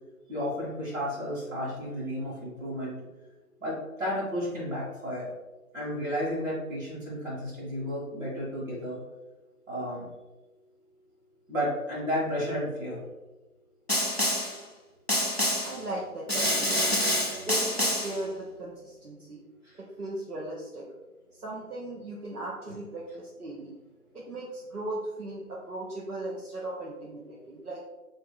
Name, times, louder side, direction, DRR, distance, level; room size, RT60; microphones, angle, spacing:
voice 1, 0.3-3.0 3.6-5.3 5.7-9.0 9.7-10.1 11.5-13.0 19.6-19.8, equal, 60° right, -8 dB, 1.3 m, -32 dB
Snare drum, 13.9-14.6 15.1-15.8 16.3-18.2, left 1 dB, 45° left, 0.5 m, -27 dB
voice 2, 15.6-19.4 19.8-20.9 21.3-23.7 24.1-27.9, right 1 dB, 85° right, -4 dB, 0.9 m, -38 dB
3.0 x 2.7 x 3.7 m, 1.1 s
figure-of-eight pair, 170°, 44 cm